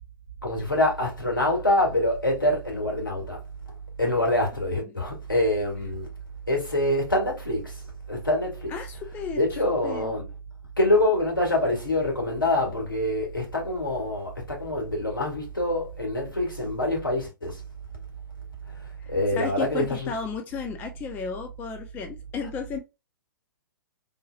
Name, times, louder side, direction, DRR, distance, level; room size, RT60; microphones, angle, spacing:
voice 1, 0.4-3.4 4.0-6.1 6.5-7.8 8.1-8.7 9.4-10.3 10.8-17.6 19.1-20.1, left 1 dB, 75° left, 1.8 m, -25 dB
voice 2, 8.7-10.1 19.0-22.8, left 6 dB, 15° left, 0.4 m, -34 dB
3.8 x 2.8 x 2.4 m
figure-of-eight pair, 115°, 11 cm